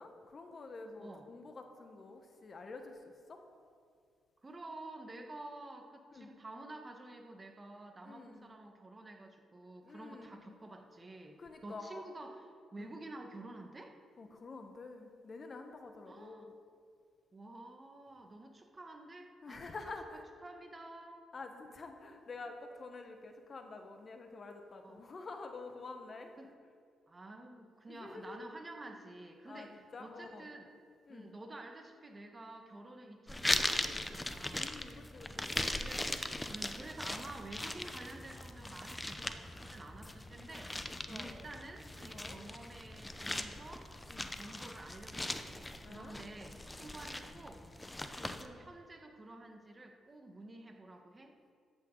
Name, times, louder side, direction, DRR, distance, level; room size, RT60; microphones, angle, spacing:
voice 1, 0.0-3.4 6.1-6.3 8.0-8.5 9.8-10.6 11.4-12.1 12.8-12.9 14.2-16.5 19.4-20.2 21.3-26.4 27.9-28.4 29.5-30.5 31.1-31.3 34.5-35.6 41.1-41.5 42.1-42.4 44.1-44.4 45.8-46.2 48.2-48.3, left 3 dB, 45° left, 5 dB, 1.3 m, -48 dB
voice 2, 1.0-1.3 4.4-12.5 12.7-14.0 16.1-16.5 17.3-19.6 20.4-21.2 24.8-25.0 26.4-26.5 27.1-30.7 31.1-34.9 35.7-36.1 36.5-43.9 44.3-47.7 48.1-51.5, right 2 dB, 30° right, 3 dB, 1.5 m, -50 dB
sound 1, 33.3-48.5, left 1 dB, 15° left, 0.8 m, -40 dB
13.5 x 8.8 x 4.0 m, 2.2 s
supercardioid pair, 65°, 0 cm